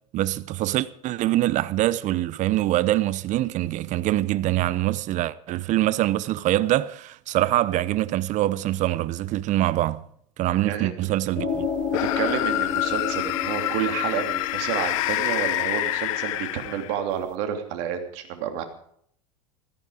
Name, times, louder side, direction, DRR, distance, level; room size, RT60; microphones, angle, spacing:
voice 1, 0.1-10.0 10.4-11.7, right 15 dB, 45° right, 0.9 m, -24 dB
sound 1, 11.4-16.6, left 6 dB, 40° left, 7.5 m, -31 dB
sound 2, 11.9-17.1, left 17 dB, 65° left, 1.0 m, -27 dB
voice 2, 12.0-18.6, right 9 dB, 60° right, 3.0 m, -30 dB
16.5 x 14.5 x 5.0 m
hypercardioid pair, 95°, 18 cm